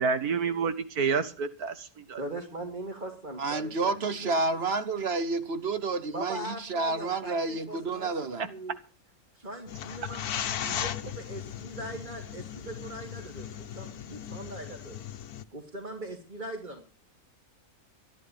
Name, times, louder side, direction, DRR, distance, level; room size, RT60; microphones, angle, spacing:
voice 1, 0.0-2.2, right 5 dB, 85° right, 2.0 m, -29 dB
voice 2, 2.2-4.3 4.9-5.0 6.1-8.8 9.3-10.2 10.6-13.5 13.7-15.0 15.5-16.9, right 1 dB, 30° right, 2.7 m, -40 dB
voice 3, 3.4-8.5, right 3 dB, 50° right, 1.1 m, -30 dB
sound 1, 9.7-15.4, left 10 dB, 85° left, 1.4 m, -37 dB
14.5 x 11.5 x 5.6 m
omnidirectional pair, 1.6 m